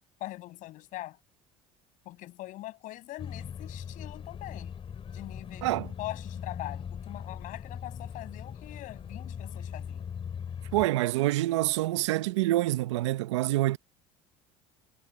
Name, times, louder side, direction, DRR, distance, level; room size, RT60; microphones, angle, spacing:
voice 1, 0.2-1.2 2.1-4.7 5.1-5.7 6.0-10.1, left 16 dB, 60° left, 7.6 m, -42 dB
sound 1, 3.2-10.9, left 7 dB, 40° left, 3.9 m, -40 dB
voice 2, 5.6-5.9 10.7-13.8, right 16 dB, 85° right, 0.9 m, -26 dB
supercardioid pair, 85°, 15 cm